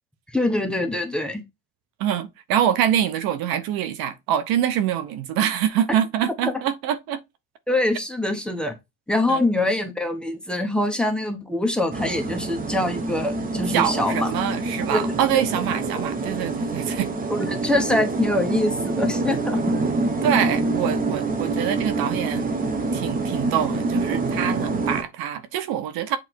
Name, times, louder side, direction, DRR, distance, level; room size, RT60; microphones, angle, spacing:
voice 1, 0.3-1.4 7.7-8.7 9.1-14.3 14.9-15.0 15.3-15.4 17.3-19.8, left 1 dB, ahead, 1.0 m, -24 dB
voice 2, 2.0-7.2 9.3-9.4 13.7-17.1 20.2-22.5 22.9-26.2, right 10 dB, 60° right, 1.0 m, -25 dB
sound 1, 11.9-25.0, right 3 dB, 20° right, 1.0 m, -26 dB
8.0 x 3.2 x 4.5 m
cardioid pair, 150°, 40 cm